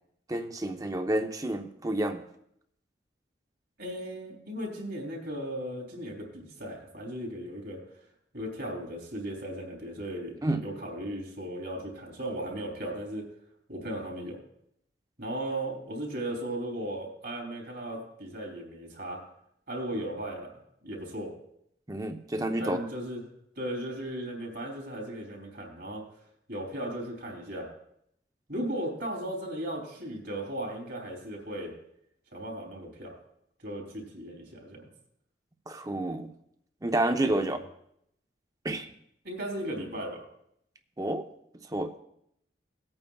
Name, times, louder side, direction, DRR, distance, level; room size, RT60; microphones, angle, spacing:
voice 1, 0.3-2.2 10.4-10.6 21.9-22.8 35.7-36.3 36.8-37.6 38.6-38.9 41.0-41.2 41.7-41.9, right 1 dB, 20° right, 7 dB, 0.7 m, -29 dB
voice 2, 3.8-7.8 8.3-13.3 13.7-14.4 15.2-19.2 19.7-20.5 20.8-21.3 22.6-23.2 23.5-26.0 26.5-27.7 28.5-31.7 32.3-33.1 33.6-34.9 37.2-37.6 39.2-40.2, right 1 dB, 65° right, 1 dB, 3.3 m, -36 dB
19.0 x 8.8 x 2.4 m, 0.73 s
head